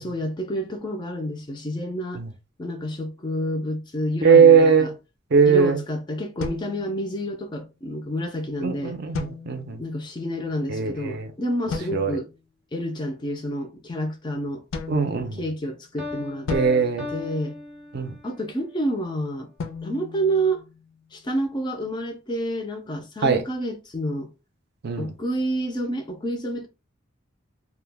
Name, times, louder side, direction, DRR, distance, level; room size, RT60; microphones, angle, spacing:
voice 1, 0.0-2.2 2.6-4.9 5.5-9.0 9.8-12.3 12.7-14.6 15.4-16.5 17.1-17.6 18.2-19.5 19.8-20.6 21.1-24.3 25.0-26.7, right 1 dB, 20° left, 0.3 m, -29 dB
voice 2, 4.2-4.9 5.3-5.8 8.6-9.8 10.7-11.3 11.9-12.2 14.9-15.4 16.5-17.1 17.9-18.2 23.2-23.4 24.8-25.1, right 6 dB, 55° right, 0.5 m, -19 dB
sound 1, 6.4-7.5 9.1-9.9 11.7-12.4 14.7-15.8 16.5-17.9 19.6-21.1, left 4 dB, 85° left, 0.4 m, -36 dB
Piano, 16.0-18.4, left 2 dB, ahead, 0.7 m, -36 dB
2.2 x 2.1 x 3.2 m
head